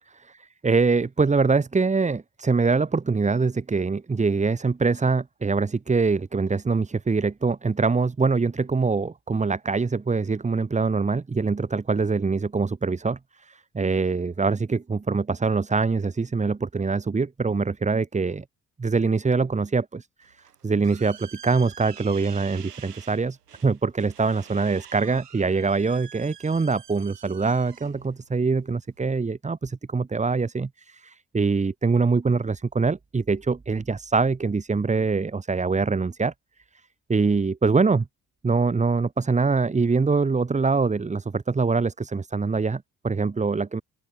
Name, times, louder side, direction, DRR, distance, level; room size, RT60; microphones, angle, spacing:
voice 1, 0.6-18.4 18.8-20.4 20.6-36.3 37.1-38.1 38.4-43.8, right 4 dB, 15° right, 1.0 m, -24 dB
sound 1, 20.2-29.3, right 9 dB, 85° right, 1.5 m, -47 dB
open air
figure-of-eight pair, 40°, 46 cm